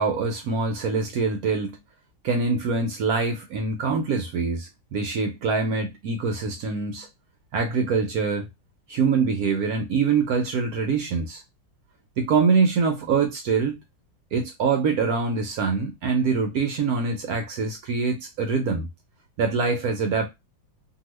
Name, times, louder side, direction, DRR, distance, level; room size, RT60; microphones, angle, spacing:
voice 1, 0.0-1.8 2.2-7.1 7.5-8.5 8.9-11.4 12.2-13.8 14.3-18.9 19.4-20.3, right 5 dB, 70° right, 0.9 m, -24 dB
2.8 x 2.6 x 3.0 m
omnidirectional pair, 2.1 m